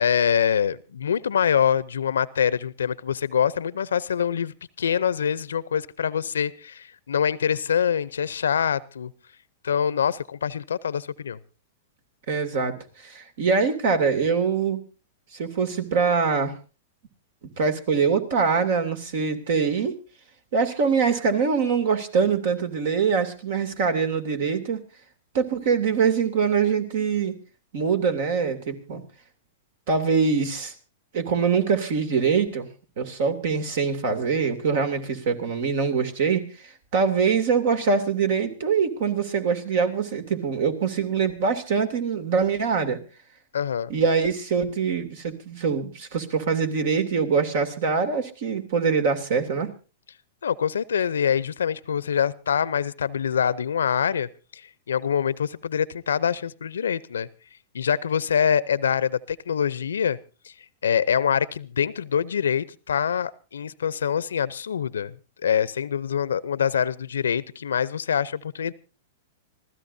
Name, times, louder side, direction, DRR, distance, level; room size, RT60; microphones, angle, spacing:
voice 1, 0.0-9.1 9.6-11.4 43.5-43.9 50.4-54.6 54.9-57.3 57.7-60.2 60.4-60.5 60.8-65.1 65.4-68.7, left 8 dB, 80° left, 19 dB, 0.7 m, -25 dB
voice 2, 12.3-12.8 13.0-14.8 15.3-16.5 17.6-20.0 20.5-24.8 25.3-27.4 27.7-29.0 29.9-30.7 31.1-32.7 33.0-43.0 43.9-49.7, right 5 dB, 60° right, 8 dB, 2.7 m, -24 dB
26.5 x 15.5 x 2.7 m, 0.33 s
hypercardioid pair, 110°, 0 cm